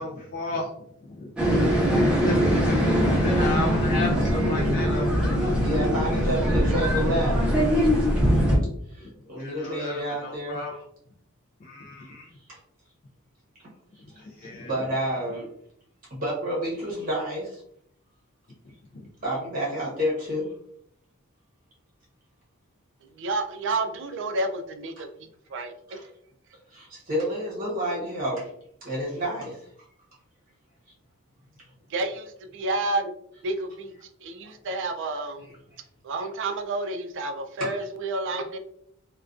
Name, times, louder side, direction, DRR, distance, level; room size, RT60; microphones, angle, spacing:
voice 1, 0.0-5.6 9.0-9.1 9.4-10.8 11.6-12.3 14.1-14.8 18.9-19.1, left 2 dB, 45° left, -1 dB, 0.3 m, -35 dB
sound 1, 1.4-8.6, equal, 5° right, 0.6 m, -22 dB
voice 2, 5.6-7.4 8.9-10.6 12.5-12.6 14.1-14.2 14.6-15.4 16.1-17.6 19.2-20.5 25.9-26.1 26.7-28.5 28.8-29.7 37.6-37.8, equal, 40° right, -5 dB, 0.8 m, -29 dB
voice 3, 23.2-25.1 25.5-26.0 31.9-33.1 33.4-33.9 34.2-35.5 36.0-38.6, right 2 dB, 60° right, 6 dB, 0.4 m, -30 dB
2.4 x 2.2 x 2.3 m, 0.70 s
head